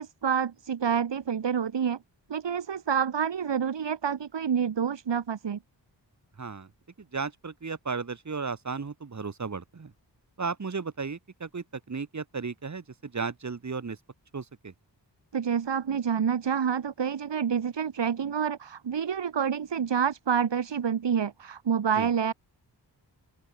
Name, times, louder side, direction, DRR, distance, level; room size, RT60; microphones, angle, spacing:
voice 1, 0.0-2.0 2.3-5.6 15.3-22.3, right 7 dB, 90° right, 2.0 m, -28 dB
voice 2, 6.4-6.7 7.0-9.9 10.4-14.0 14.3-14.7 22.0-22.1, right 5 dB, 40° right, 1.5 m, -35 dB
open air
wide cardioid pair, 65°, 42 cm